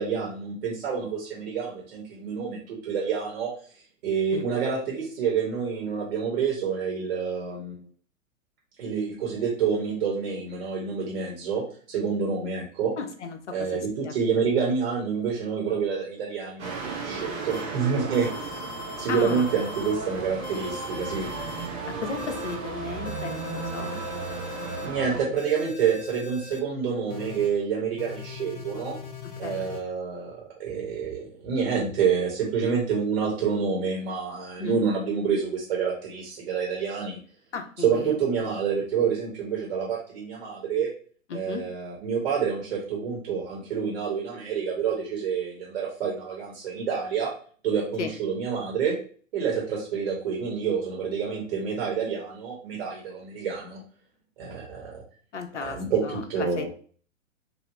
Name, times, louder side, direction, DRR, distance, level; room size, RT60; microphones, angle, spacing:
voice 1, 0.0-3.5 4.0-7.9 8.8-11.6 11.9-12.9 13.5-18.6 19.0-21.3 24.8-28.9 29.4-37.2 37.8-40.9 41.3-47.3 47.6-48.9 49.3-53.8 54.4-55.0 55.6-56.7, right 6 dB, 50° right, -3 dB, 1.4 m, -28 dB
voice 2, 12.9-14.1 19.1-19.5 21.9-24.0 25.2-25.3 29.2-29.6 34.6-34.9 37.5-38.2 41.3-41.6 48.0-48.1 55.3-56.7, left 5 dB, 60° left, 6 dB, 0.8 m, -35 dB
sound 1, 16.6-25.2, right 4 dB, 20° right, 0.6 m, -35 dB
sound 2, 17.5-17.6 18.1-19.9 20.4-21.7 22.2-22.6 23.1-24.9 25.4-26.6 27.1-27.5 28.0-29.8, left 5 dB, 35° left, 0.6 m, -40 dB
3.1 x 2.6 x 2.9 m, 0.43 s
figure-of-eight pair, 110°, 40 cm